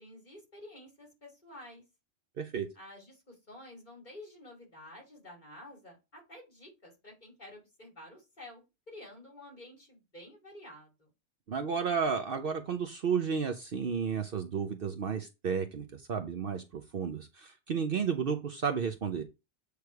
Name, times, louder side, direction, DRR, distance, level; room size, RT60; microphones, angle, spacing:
voice 1, 0.0-1.8 2.8-11.1, left 1 dB, 40° left, 2.7 m, -51 dB
voice 2, 2.4-2.7 11.5-19.2, right 6 dB, 55° right, 0.8 m, -32 dB
8.1 x 3.4 x 4.6 m
omnidirectional pair, 1.3 m